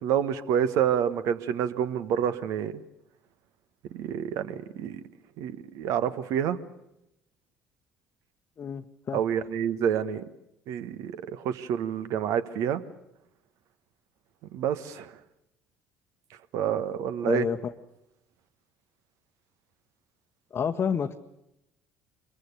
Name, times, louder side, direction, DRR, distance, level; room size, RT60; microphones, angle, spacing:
voice 1, 0.0-2.8 3.9-5.0 5.4-6.6 9.1-10.2 10.7-12.8 14.5-15.2 16.5-17.5, right 9 dB, 60° right, 13 dB, 1.3 m, -28 dB
voice 2, 8.6-9.2 17.2-17.6 20.5-21.2, left 7 dB, 40° left, 3 dB, 1.1 m, -29 dB
25.0 x 22.5 x 6.8 m, 0.85 s
figure-of-eight pair, 55°, 6 cm